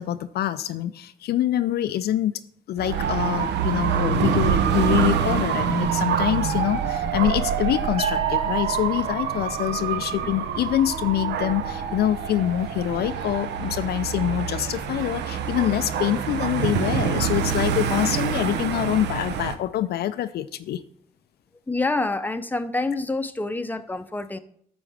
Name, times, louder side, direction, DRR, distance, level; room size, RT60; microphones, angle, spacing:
voice 1, 0.0-2.4 2.7-20.8, left 12 dB, 60° left, 13 dB, 0.4 m, -25 dB
Dog / Motorcycle, 2.8-19.5, right 7 dB, 70° right, 0.7 m, -26 dB
sound 1, 8.0-11.9, right 3 dB, 30° right, 0.6 m, -39 dB
voice 2, 21.7-24.4, left 2 dB, 10° left, 10 dB, 0.6 m, -27 dB
9.1 x 6.2 x 3.4 m, 0.66 s
hypercardioid pair, 45°, 19 cm